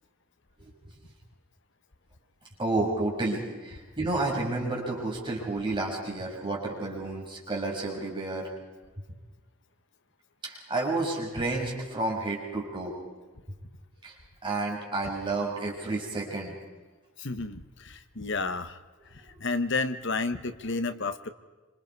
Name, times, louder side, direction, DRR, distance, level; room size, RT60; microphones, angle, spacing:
voice 1, 2.6-8.5 10.4-12.9 14.0-14.1 14.4-16.5, right 2 dB, 25° right, -2 dB, 6.3 m, -30 dB
voice 2, 17.2-18.8 19.1-21.3, left 3 dB, 60° left, 10 dB, 1.3 m, -31 dB
27.0 x 26.5 x 4.8 m, 1.3 s
head